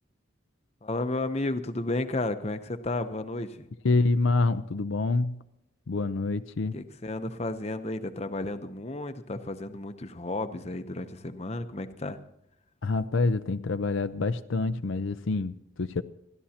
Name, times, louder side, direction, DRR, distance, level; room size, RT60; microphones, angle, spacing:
voice 1, 0.8-3.7 6.7-12.2, left 2 dB, 30° left, 9 dB, 0.8 m, -32 dB
voice 2, 3.8-5.4 5.9-6.7 12.8-16.0, left 3 dB, 70° left, 10 dB, 0.5 m, -27 dB
29.0 x 11.5 x 2.9 m, 0.80 s
head